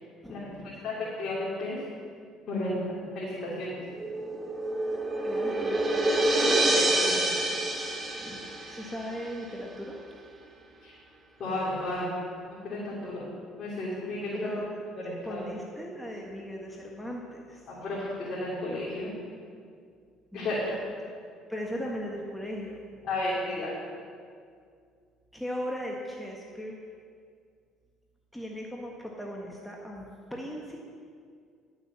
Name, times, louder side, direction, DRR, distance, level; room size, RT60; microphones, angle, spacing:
voice 1, 0.2-0.9 5.2-6.1 6.4-6.5 8.2-10.0 14.3-14.7 15.2-17.7 20.3-20.7 21.5-23.0 25.3-26.8 28.3-30.8, equal, 5° left, -2 dB, 1.6 m, -38 dB
voice 2, 0.8-1.8 2.5-2.7 3.1-3.8 6.6-7.3 10.8-10.9 11.4-12.1 12.6-13.2 13.6-14.4 15.3-15.4 17.7-19.1 20.3-20.8 23.0-23.7, left 2 dB, 55° left, -7 dB, 3.4 m, -33 dB
sound 1, 3.9-9.2, right 1 dB, 20° right, 2.6 m, -27 dB
11.5 x 7.1 x 7.5 m, 2.2 s
supercardioid pair, 80°, 0 cm